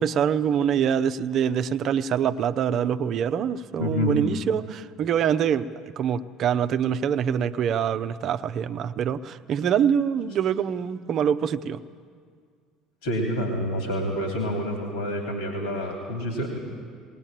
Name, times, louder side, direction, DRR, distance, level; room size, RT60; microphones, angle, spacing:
voice 1, 0.0-11.8, right 8 dB, 50° right, 10 dB, 0.7 m, -25 dB
voice 2, 3.8-4.2 13.0-16.6, equal, 70° left, 2 dB, 3.0 m, -28 dB
20.0 x 19.0 x 9.0 m, 2.1 s
figure-of-eight pair, 60°, 0 cm